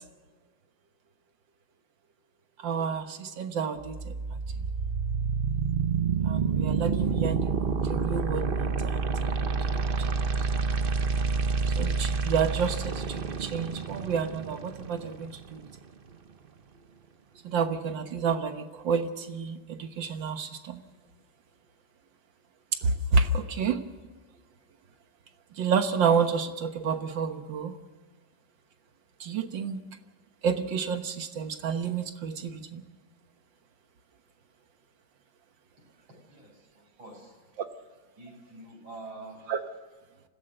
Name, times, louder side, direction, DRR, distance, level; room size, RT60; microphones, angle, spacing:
voice 1, 2.6-4.7 6.2-9.9 10.4-10.5 11.8-15.6 17.4-20.8 22.7-23.8 25.6-27.8 29.2-29.8 30.4-32.8 39.5-39.6, right 5 dB, 70° right, 8 dB, 1.9 m, -30 dB
sound 1, 3.8-15.8, right 5 dB, 45° right, 0.7 m, -28 dB
voice 2, 36.3-37.4 38.2-39.4, right 2 dB, 85° right, -1 dB, 9.0 m, -46 dB
25.5 x 16.5 x 6.6 m, 1.4 s
omnidirectional pair, 2.1 m